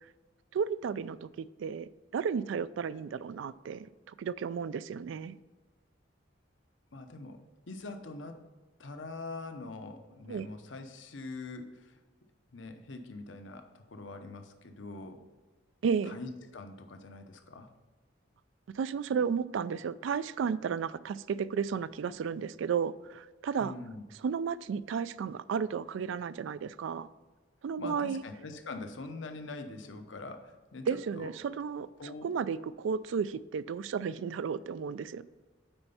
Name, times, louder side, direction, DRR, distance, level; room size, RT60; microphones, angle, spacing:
voice 1, 0.5-5.4 10.3-10.5 15.8-16.2 18.7-23.8 24.2-27.1 27.6-28.2 30.9-31.9 32.2-35.2, right 6 dB, 75° right, 17 dB, 0.3 m, -33 dB
voice 2, 6.9-7.4 7.7-8.4 8.8-12.0 12.5-15.2 16.0-17.7 23.6-24.0 27.8-31.3 32.0-32.3, left 3 dB, 75° left, 6 dB, 0.8 m, -43 dB
8.9 x 4.4 x 5.5 m, 1.3 s
head